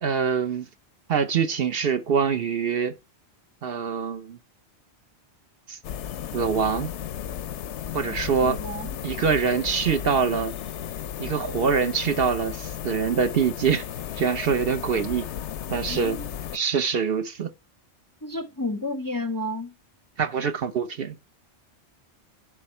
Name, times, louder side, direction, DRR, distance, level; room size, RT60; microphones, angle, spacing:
voice 1, 0.0-0.7 1.1-2.9 3.6-4.4 5.7-5.8 6.3-6.9 7.9-10.5 11.2-13.8 14.2-15.3 15.7-16.2 16.5-17.5 20.2-21.2, right 6 dB, 60° right, 1.0 m, -24 dB
sound 1, 5.8-16.6, left 9 dB, 80° left, 0.9 m, -34 dB
voice 2, 8.4-8.9 15.9-16.3 18.2-19.7, left 2 dB, 25° left, 0.5 m, -31 dB
11.5 x 5.9 x 4.3 m
omnidirectional pair, 1.2 m